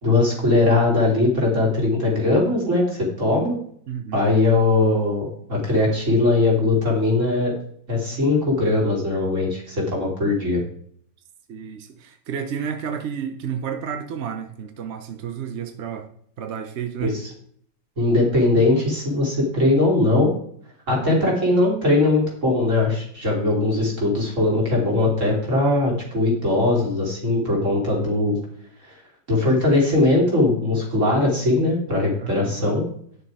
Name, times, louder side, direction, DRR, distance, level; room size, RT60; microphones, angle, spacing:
voice 1, 0.0-3.6 4.1-7.5 7.9-10.6 17.0-17.1 18.0-20.3 20.9-28.4 28.8-28.9 29.3-32.8, left 2 dB, 40° right, -3 dB, 3.6 m, -20 dB
voice 2, 3.9-4.2 11.5-16.1 16.4-17.2 21.0-21.4 32.2-32.7, right 7 dB, 55° right, 7 dB, 0.8 m, -31 dB
9.7 x 6.6 x 4.8 m, 0.63 s
omnidirectional pair, 2.1 m